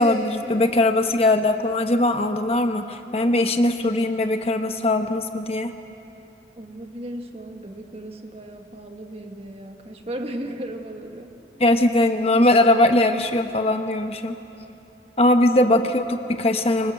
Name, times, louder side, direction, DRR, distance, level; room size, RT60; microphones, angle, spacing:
voice 1, 0.0-5.7 11.6-14.4 15.2-16.9, left 1 dB, 35° left, 6 dB, 1.1 m, -20 dB
voice 2, 6.6-11.4 15.8-15.9, right 1 dB, 35° right, 4 dB, 1.7 m, -36 dB
25.5 x 25.5 x 8.1 m, 2.9 s
head